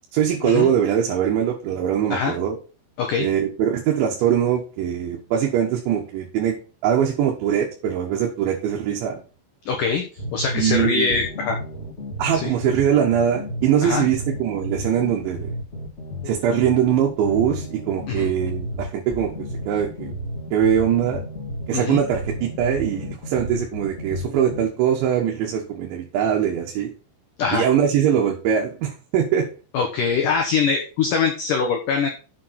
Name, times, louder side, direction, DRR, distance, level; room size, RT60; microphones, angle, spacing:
voice 1, 0.1-2.6 3.2-6.6 6.8-9.2 10.5-11.2 12.2-15.5 16.3-20.1 20.5-21.2 21.7-26.9 27.5-29.5, right 9 dB, 75° right, 0 dB, 3.7 m, -22 dB
voice 2, 9.7-10.0 10.3-11.6 12.3-12.5 13.8-14.0 18.1-18.3 21.7-22.0 27.4-27.7 29.7-32.1, left 5 dB, 70° left, 3 dB, 2.1 m, -23 dB
sound 1, 10.2-24.6, equal, 30° left, 1.2 m, -32 dB
7.6 x 7.4 x 5.9 m, 0.35 s
omnidirectional pair, 5.5 m